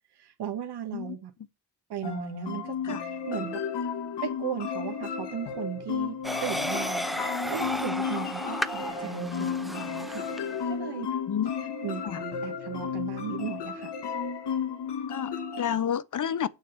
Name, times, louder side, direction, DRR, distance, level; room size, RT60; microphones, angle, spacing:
voice 1, 0.1-1.3 1.9-3.6 4.2-7.2 7.5-10.3 10.7-11.2 11.8-13.9, right 9 dB, 70° right, 1.2 m, -36 dB
sound 1, 2.0-15.7, left 6 dB, 85° left, 1.7 m, -33 dB
sound 2, 6.2-10.6, equal, ahead, 0.6 m, -33 dB
voice 2, 11.3-11.7 12.0-12.2 15.1-16.5, left 9 dB, 50° left, 0.7 m, -30 dB
6.9 x 6.4 x 7.8 m
cardioid pair, 85°, 41 cm